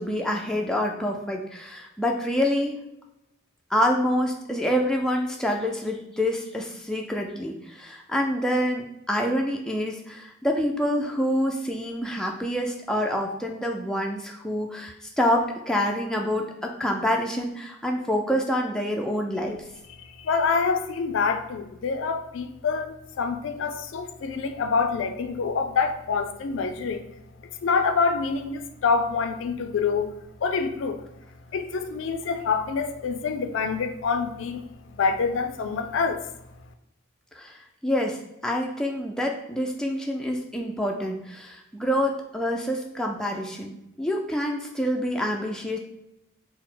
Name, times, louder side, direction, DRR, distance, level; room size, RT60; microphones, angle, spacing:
voice 1, 0.0-2.8 3.7-19.6 37.3-45.8, equal, 5° left, 0 dB, 0.3 m, -27 dB
voice 2, 20.0-27.1 27.6-31.1 31.5-36.4, left 5 dB, 75° left, 8 dB, 0.4 m, -26 dB
4.5 x 2.0 x 3.7 m, 0.87 s
head